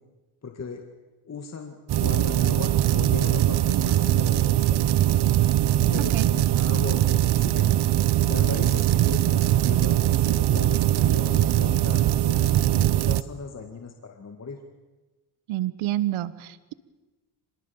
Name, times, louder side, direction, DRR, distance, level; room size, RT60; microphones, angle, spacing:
voice 1, 0.4-0.8 1.2-4.8 5.7-7.8 8.3-14.6, left 5 dB, 35° left, 4 dB, 2.1 m, -37 dB
sound 1, 1.9-13.2, right 13 dB, 55° right, 0.8 m, -21 dB
voice 2, 15.5-16.7, right 14 dB, 90° right, 16 dB, 1.2 m, -28 dB
25.5 x 20.0 x 7.2 m, 1.2 s
cardioid pair, 95°, 47 cm